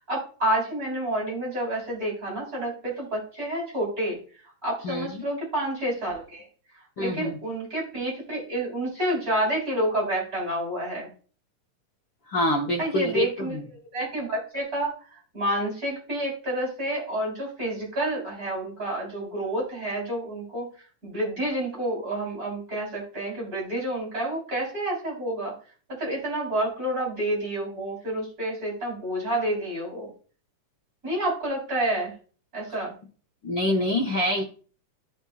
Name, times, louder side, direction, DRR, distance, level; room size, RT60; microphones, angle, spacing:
voice 1, 0.1-4.2 4.6-6.4 7.0-11.1 12.8-13.6 13.9-14.9 15.3-20.7 21.0-25.5 25.9-30.1 31.0-32.1 32.5-32.9, right 1 dB, 25° right, -4 dB, 3.9 m, -29 dB
voice 2, 4.8-5.2 7.0-7.4 12.3-13.7 33.4-34.4, equal, 90° left, -2 dB, 1.0 m, -26 dB
13.5 x 5.3 x 2.3 m, 0.39 s
omnidirectional pair, 3.8 m